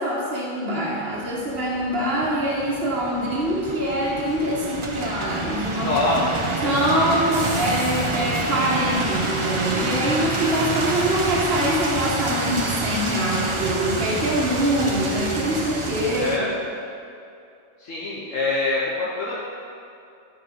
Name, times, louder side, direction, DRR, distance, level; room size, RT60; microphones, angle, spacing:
voice 1, 0.0-6.3 6.6-16.5, equal, 50° right, -4 dB, 1.7 m, -24 dB
sound 1, 1.2-16.4, right 2 dB, 30° right, 0.7 m, -28 dB
voice 2, 5.8-6.3 16.1-16.5 17.8-19.4, left 2 dB, 80° left, -6 dB, 1.6 m, -24 dB
12.0 x 5.1 x 6.0 m, 2.5 s
omnidirectional pair, 1.3 m